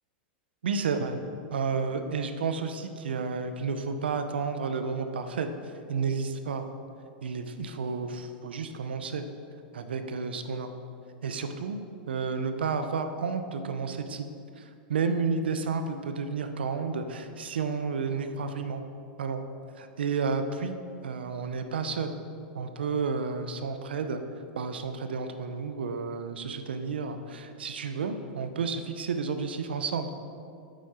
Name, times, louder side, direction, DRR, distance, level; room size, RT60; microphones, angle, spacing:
voice 1, 0.6-1.2 1.5-5.5 5.9-6.7 7.2-9.2 9.7-10.7 11.2-11.8 12.1-14.3 14.6-18.8 19.2-19.4 19.8-20.8 21.0-22.1 22.5-24.2 24.6-30.1, right 5 dB, 90° right, 8 dB, 0.7 m, -31 dB
8.3 x 7.5 x 4.3 m, 2.5 s
hypercardioid pair, 115°, 5 cm